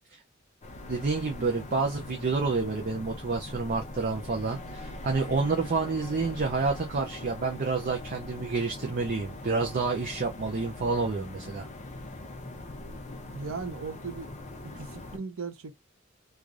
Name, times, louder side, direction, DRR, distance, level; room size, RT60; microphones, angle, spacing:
sound 1, 0.6-15.2, left 2 dB, 35° left, 0.6 m, -42 dB
voice 1, 0.9-11.7, right 4 dB, 45° right, 0.5 m, -29 dB
voice 2, 13.2-14.3 14.6-15.8, right 4 dB, 80° right, 0.7 m, -38 dB
3.2 x 2.4 x 2.4 m
head